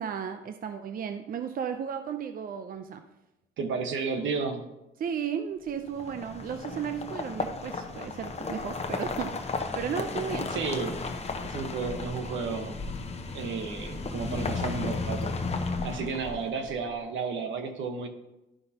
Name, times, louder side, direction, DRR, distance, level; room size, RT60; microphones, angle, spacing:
voice 1, 0.0-3.0 5.0-10.5, right 7 dB, 45° right, 8 dB, 0.5 m, -34 dB
voice 2, 3.6-4.7 10.5-11.1 11.4-12.8 13.3-15.3 15.6-18.1, right 5 dB, 75° right, 6 dB, 1.1 m, -32 dB
sound 1, 5.9-16.7, left 3 dB, 30° left, 0.8 m, -34 dB
12.5 x 5.4 x 2.8 m, 0.97 s
cardioid pair, 90°, 20 cm